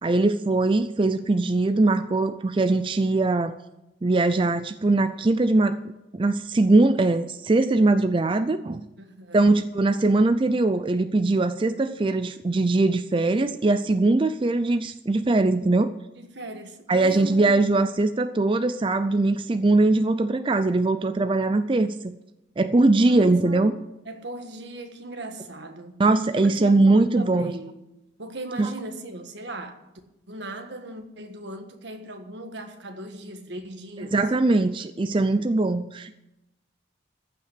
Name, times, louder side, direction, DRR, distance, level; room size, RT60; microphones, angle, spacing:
voice 1, 0.0-3.6 4.0-5.8 6.1-8.8 9.3-15.9 16.9-22.1 22.6-23.7 26.0-27.5 28.6-28.7 34.1-36.2, right 2 dB, 25° right, 0.4 m, -21 dB
voice 2, 9.0-9.5 16.1-17.4 23.0-23.8 24.0-26.0 26.4-27.8 28.2-29.8 30.3-34.2, right 2 dB, 65° right, 1.5 m, -38 dB
15.0 x 5.8 x 8.2 m
head